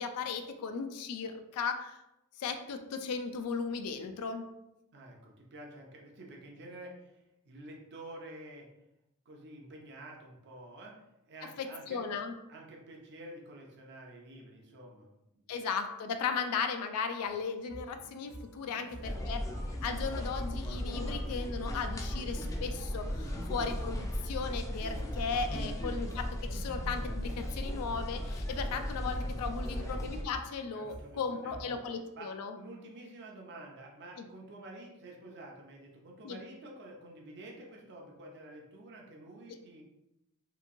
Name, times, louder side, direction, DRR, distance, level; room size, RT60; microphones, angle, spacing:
voice 1, 0.0-2.0 2.4-4.5 11.6-12.3 15.5-19.4 19.8-32.6 34.2-34.3 36.2-36.4, left 5 dB, 90° left, 8 dB, 0.3 m, -36 dB
voice 2, 4.9-8.7 9.3-12.0 12.5-15.5 18.7-19.2 25.6-25.8 29.7-30.0 30.7-31.8 32.2-39.8, right 1 dB, 50° right, -1 dB, 0.6 m, -49 dB
sound 1, 17.2-31.6, right 1 dB, 85° right, 0.7 m, -51 dB
sound 2, 19.0-30.2, left 1 dB, 15° left, 0.4 m, -36 dB
2.9 x 2.6 x 2.5 m, 0.88 s
head